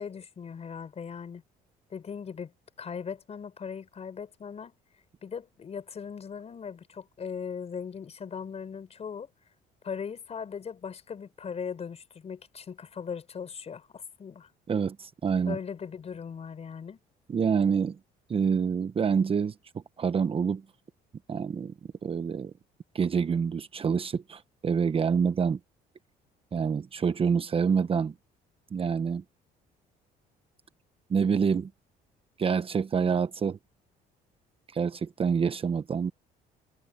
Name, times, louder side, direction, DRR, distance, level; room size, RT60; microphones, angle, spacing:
voice 1, 0.0-1.4 1.9-2.5 2.8-4.8 5.2-9.3 9.8-14.5 15.5-17.0, left 6 dB, 40° left, 5.0 m, -39 dB
voice 2, 14.7-15.6 17.3-18.0 18.3-20.6 21.3-22.5 22.9-25.6 26.5-28.1 28.7-29.2 31.1-31.7 32.4-33.6 34.7-36.1, right 6 dB, 35° right, 1.0 m, -27 dB
cardioid pair, 110°, 17 cm